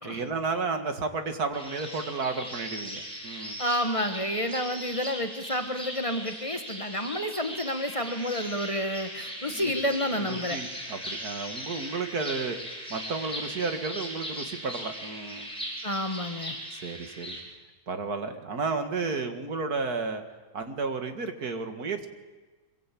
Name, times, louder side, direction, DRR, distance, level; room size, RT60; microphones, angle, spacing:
voice 1, 0.0-3.6 9.4-9.7 10.1-15.5 16.7-17.4 17.9-20.2 20.5-22.1, right 4 dB, 80° right, 7 dB, 2.4 m, -32 dB
sound 1, 1.5-17.4, equal, 5° left, 5.9 m, -39 dB
voice 2, 3.6-10.6 15.8-16.6, equal, 20° left, 6 dB, 1.6 m, -30 dB
25.0 x 22.5 x 8.5 m, 1.3 s
omnidirectional pair, 1.6 m